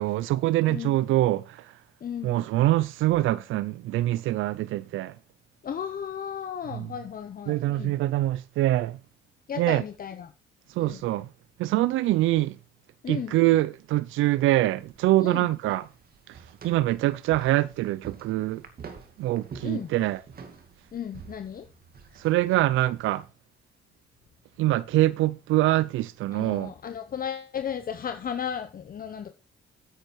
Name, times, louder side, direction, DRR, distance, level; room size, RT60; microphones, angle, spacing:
voice 1, 0.0-1.7 2.2-5.1 6.7-6.9 7.5-9.0 9.6-9.8 10.7-11.3 11.6-12.6 13.1-15.9 16.3-16.4 16.6-18.6 19.2-20.2 22.2-23.2 24.6-26.7, right 16 dB, 85° right, 0.5 m, -24 dB
voice 2, 2.0-2.4 5.6-8.0 9.5-10.3 10.8-11.0 13.0-13.4 15.2-15.5 19.6-19.9 20.9-21.7 26.3-29.3, left 8 dB, 45° left, 1.0 m, -35 dB
sound 1, 14.4-23.3, right 6 dB, 50° right, 2.4 m, -48 dB
9.4 x 8.9 x 4.7 m
cardioid pair, 90°, 20 cm